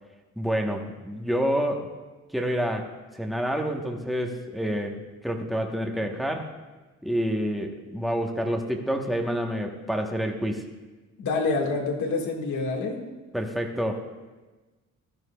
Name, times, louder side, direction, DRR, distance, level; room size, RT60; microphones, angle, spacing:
voice 1, 0.4-1.9 2.3-6.5 7.0-10.6 13.3-14.1, equal, ahead, 2 dB, 1.0 m, -28 dB
voice 2, 11.2-13.0, left 3 dB, 85° left, 1 dB, 1.8 m, -27 dB
14.5 x 12.0 x 2.3 m, 1.2 s
cardioid pair, 105°, 29 cm